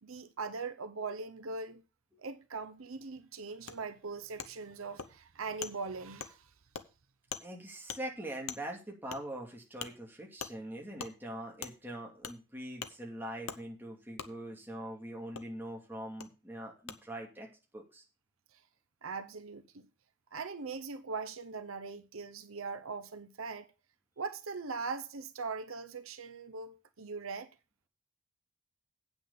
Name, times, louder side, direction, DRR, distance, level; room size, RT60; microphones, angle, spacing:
voice 1, 0.0-1.8 2.2-6.5 19.0-19.9 20.3-23.7 24.2-27.5, right 4 dB, 75° right, 0.8 m, -41 dB
Wood, 3.7-3.8 4.4-4.5 5.0-5.1 5.6-5.7 6.2-6.3 6.7-6.9 7.3-7.5 7.9-8.0 8.5-8.6 9.1-9.2 9.8-9.9 10.4-10.5 11.0-11.1 11.6-11.7 12.2-12.4 12.8-12.9 13.5-13.6 14.2-14.3 15.3-15.5 16.2-16.3 16.9-17.0, left 7 dB, 80° left, 1.0 m, -41 dB
voice 2, 7.4-17.5 17.7-18.0, right 1 dB, 10° right, 2.6 m, -43 dB
8.5 x 6.2 x 6.8 m
head